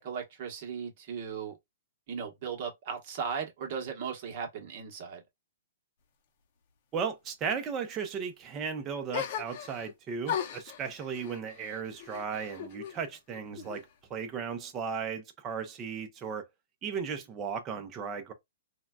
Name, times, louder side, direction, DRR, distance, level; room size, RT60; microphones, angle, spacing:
voice 1, 0.0-1.6 2.1-5.2 13.5-13.7, right 6 dB, 45° right, 1.1 m, -37 dB
voice 2, 6.9-13.8 14.1-16.4 16.8-18.3, right 6 dB, 20° right, 0.7 m, -36 dB
sound 1, 9.1-9.9 10.2-13.0 13.3-14.1, left 9 dB, 45° left, 0.7 m, -38 dB
3.8 x 2.2 x 2.3 m
hypercardioid pair, 155°, 0 cm